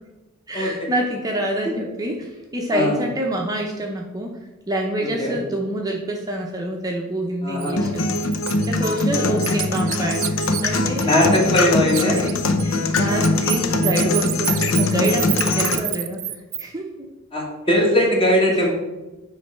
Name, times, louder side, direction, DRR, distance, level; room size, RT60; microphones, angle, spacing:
voice 1, 0.5-4.4 4.7-8.1 8.6-11.2 11.9-16.2 16.6-17.1 18.5-18.6, right 1 dB, 20° right, 0 dB, 0.7 m, -27 dB
voice 2, 7.4-7.8 9.2-9.3 11.0-12.2 17.3-18.7, left 1 dB, 25° left, -2 dB, 1.7 m, -19 dB
Bird, 7.6-7.7 8.1-11.6 11.9-16.6, right 14 dB, 70° right, 0.5 m, -28 dB
sound 1, 7.8-15.8, left 2 dB, 70° left, 0.7 m, -22 dB
8.4 x 3.2 x 5.6 m, 1.1 s
head